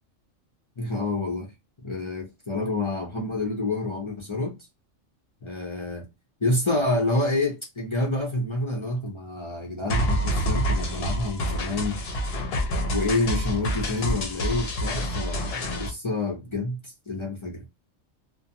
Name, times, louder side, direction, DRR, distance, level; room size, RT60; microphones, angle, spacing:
voice 1, 0.8-1.5 1.8-4.5 5.4-6.1 6.4-12.0 12.9-17.6, left 2 dB, 40° left, 0.4 m, -28 dB
sound 1, 9.9-15.9, equal, 60° left, 0.8 m, -27 dB
2.5 x 2.2 x 2.7 m
omnidirectional pair, 1.3 m